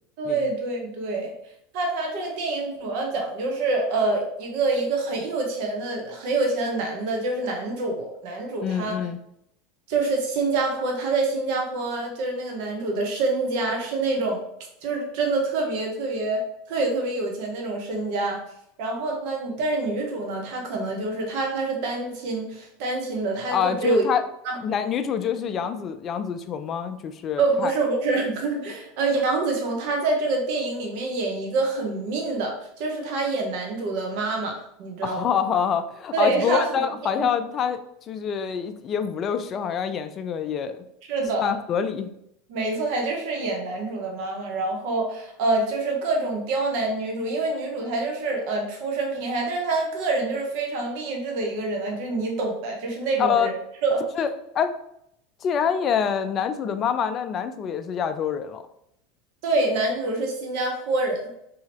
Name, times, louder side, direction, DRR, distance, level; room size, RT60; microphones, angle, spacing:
voice 1, 0.2-1.3 1.7-9.0 9.9-14.4 14.8-16.4 16.7-18.4 18.8-24.1 24.4-24.6 27.4-35.2 36.1-36.8 37.2-37.3 41.1-41.5 42.5-53.5 53.8-54.0 59.4-61.3, right 3 dB, 65° right, 1 dB, 0.8 m, -26 dB
voice 2, 8.6-9.2 23.5-24.2 24.6-27.7 35.0-37.8 38.1-40.8 41.4-42.1 53.2-53.5 54.2-54.3 54.5-54.7 55.4-58.6, left 7 dB, 40° left, 9 dB, 0.3 m, -26 dB
2.8 x 2.8 x 2.9 m, 0.76 s
hypercardioid pair, 95°, 0 cm